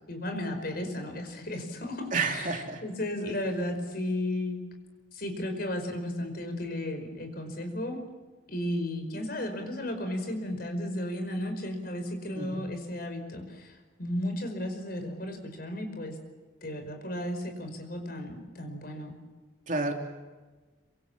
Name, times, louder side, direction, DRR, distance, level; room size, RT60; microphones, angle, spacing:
voice 1, 0.0-2.5 2.8-4.6 5.1-8.0 8.5-16.2 16.6-19.2, left 1 dB, 50° left, 6 dB, 5.2 m, -34 dB
voice 2, 2.1-2.8 12.3-12.6 19.7-19.9, right 3 dB, 40° right, 3 dB, 3.1 m, -30 dB
27.0 x 25.0 x 7.5 m, 1.3 s
head